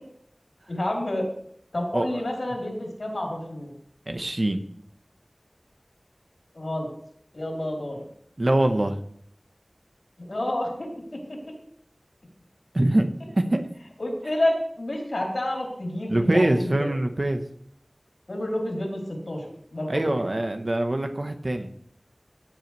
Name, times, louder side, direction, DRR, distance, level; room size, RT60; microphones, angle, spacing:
voice 1, 0.7-1.3 1.7-3.7 6.5-6.9 7.3-8.0 10.2-11.2 14.0-16.9 18.3-19.0 19.3-19.4 19.7-20.2, left 1 dB, 80° left, -2 dB, 4.4 m, -29 dB
voice 2, 1.9-2.2 4.1-4.6 8.4-9.0 12.7-13.1 13.3-13.6 16.1-17.4 19.9-21.7, right 1 dB, 60° right, 6 dB, 1.2 m, -23 dB
16.5 x 8.1 x 3.4 m, 0.64 s
wide cardioid pair, 40°, 0 cm